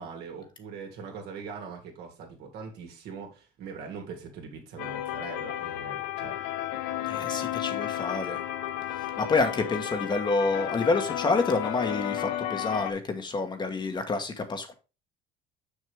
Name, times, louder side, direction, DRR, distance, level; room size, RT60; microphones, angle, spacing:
voice 1, 0.0-6.4, right 5 dB, 70° right, 2.6 m, -41 dB
sound 1, 4.8-12.9, left 12 dB, 85° left, 1.0 m, -33 dB
voice 2, 7.0-8.4 9.2-14.7, left 3 dB, 25° left, 1.3 m, -28 dB
6.5 x 6.4 x 3.5 m
cardioid pair, 115°, 18 cm